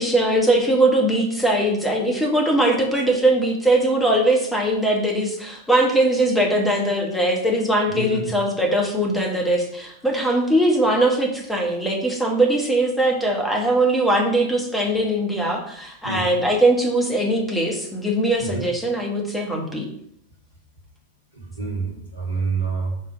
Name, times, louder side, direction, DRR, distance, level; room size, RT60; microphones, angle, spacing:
voice 1, 0.0-19.9, right 1 dB, 5° left, 0 dB, 1.6 m, -20 dB
voice 2, 7.9-8.3 16.0-16.3 18.4-18.7 21.3-23.0, right 4 dB, 80° right, -1 dB, 1.3 m, -27 dB
5.3 x 3.8 x 5.8 m, 0.72 s
figure-of-eight pair, 90°, 0 cm